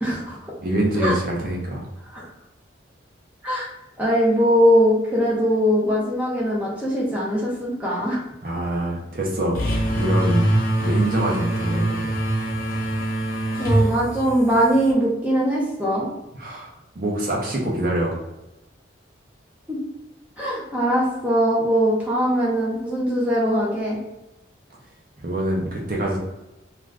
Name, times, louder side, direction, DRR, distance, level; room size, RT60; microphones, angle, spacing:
voice 1, 0.0-0.4 1.0-1.2 2.1-2.2 3.4-3.7 4.0-8.2 13.6-16.1 19.7-19.8 20.4-24.0, equal, 5° right, -5 dB, 0.6 m, -21 dB
voice 2, 0.6-1.9 8.4-9.6 9.9-10.5 10.8-12.1 13.5-13.9 16.4-18.1 25.2-26.2, right 1 dB, 45° right, -1 dB, 0.6 m, -25 dB
sound 1, 9.5-14.9, right 1 dB, 45° left, 0.5 m, -23 dB
2.5 x 2.4 x 3.2 m, 0.95 s
head